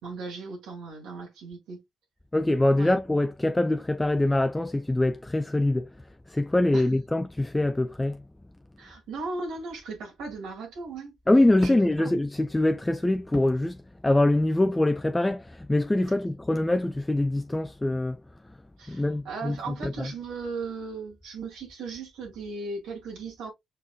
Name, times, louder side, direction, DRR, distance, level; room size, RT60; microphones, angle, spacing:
voice 1, 0.0-1.8 2.8-2.9 6.7-6.9 8.8-11.1 11.6-12.1 18.8-23.5, right 4 dB, 90° right, 1.9 m, -37 dB
voice 2, 2.3-5.9 6.3-8.2 11.3-18.2 18.9-20.1, left 1 dB, 10° left, 0.3 m, -24 dB
5.2 x 4.1 x 2.3 m
cardioid pair, 90°, 0 cm